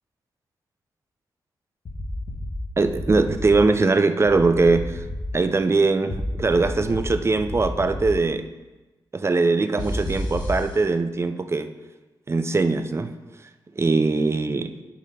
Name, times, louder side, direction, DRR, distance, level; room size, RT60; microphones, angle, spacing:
sound 1, 1.9-2.5 2.8-3.5 4.3-5.2 6.1-7.0 7.4-8.0 9.8-10.6, left 1 dB, 50° left, 2.0 m, -31 dB
voice 1, 2.8-5.0 5.3-8.4 9.1-11.7 12.3-13.1 13.8-14.7, right 3 dB, 30° right, 10 dB, 0.6 m, -21 dB
8.5 x 5.7 x 4.2 m, 1.1 s
cardioid pair, 75°, 9 cm